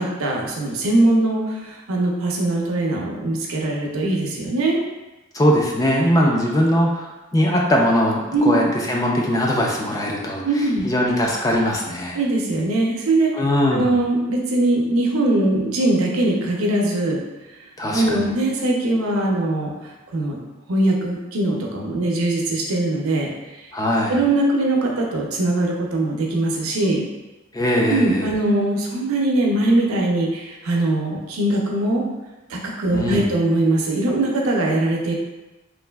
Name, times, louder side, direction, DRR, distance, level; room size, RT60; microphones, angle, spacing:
voice 1, 0.0-4.8 8.3-8.5 10.4-10.8 12.1-13.3 13.7-17.2 17.9-20.4 20.7-23.3 24.1-27.1 27.9-32.0 32.5-35.1, right 2 dB, 80° right, -1 dB, 0.5 m, -21 dB
voice 2, 5.3-10.4 10.8-12.2 13.3-13.9 17.8-18.2 23.7-24.2 27.5-28.3 32.9-33.2, equal, 15° left, -1 dB, 0.3 m, -20 dB
3.1 x 2.5 x 2.2 m, 1.1 s
head